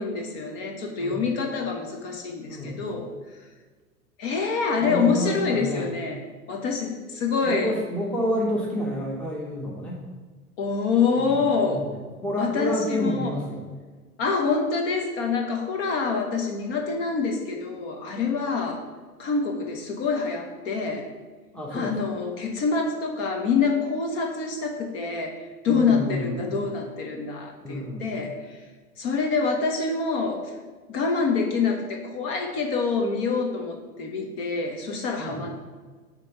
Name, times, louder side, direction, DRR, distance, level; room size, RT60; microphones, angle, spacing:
voice 1, 0.0-3.1 4.2-6.2 6.5-7.7 10.6-11.8 12.4-13.3 14.2-18.8 19.2-21.1 21.7-28.6 29.0-30.5 30.9-35.6, left 4 dB, 40° left, 3 dB, 0.9 m, -26 dB
voice 2, 2.4-2.9 4.8-5.9 7.4-10.0 11.2-11.4 11.6-11.9 12.2-13.6 21.5-22.2 25.7-26.5 27.6-28.2 35.2-35.5, equal, 5° left, -3 dB, 0.8 m, -29 dB
7.2 x 3.0 x 4.6 m, 1.4 s
hypercardioid pair, 110°, 45 cm